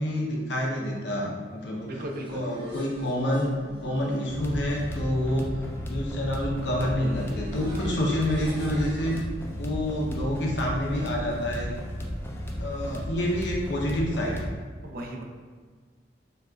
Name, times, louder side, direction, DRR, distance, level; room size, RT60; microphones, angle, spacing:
voice 1, 0.0-2.0 2.3-3.5 3.8-5.5 5.8-9.2 9.5-11.7 12.6-14.5, left 1 dB, 85° left, -2 dB, 0.7 m, -28 dB
sound 1, 1.7-9.2, right 1 dB, 35° right, 0.9 m, -44 dB
voice 2, 1.9-2.4 14.8-15.2, right 1 dB, 55° right, 2 dB, 0.5 m, -36 dB
sound 2, 4.3-14.5, equal, 15° left, 0.3 m, -34 dB
4.1 x 2.4 x 2.2 m, 1.5 s
head